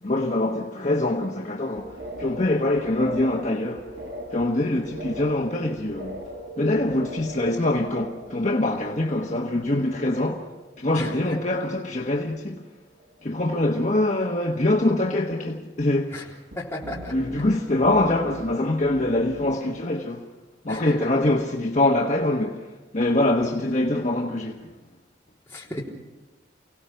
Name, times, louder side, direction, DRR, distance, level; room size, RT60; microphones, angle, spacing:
voice 1, 0.0-3.9 4.3-6.2 6.6-10.5 10.8-12.6 13.2-16.3 17.1-20.3 20.6-24.7, left 1 dB, 40° left, 1.2 m, -24 dB
sound 1, 1.6-10.5 10.8-11.5 11.8-12.5 12.8-13.2 16.5-19.7, right 1 dB, 75° right, 4.4 m, -41 dB
voice 2, 16.6-17.1 20.7-21.3 25.5-25.8, left 1 dB, 15° left, 3.7 m, -35 dB
30.0 x 17.5 x 5.8 m
head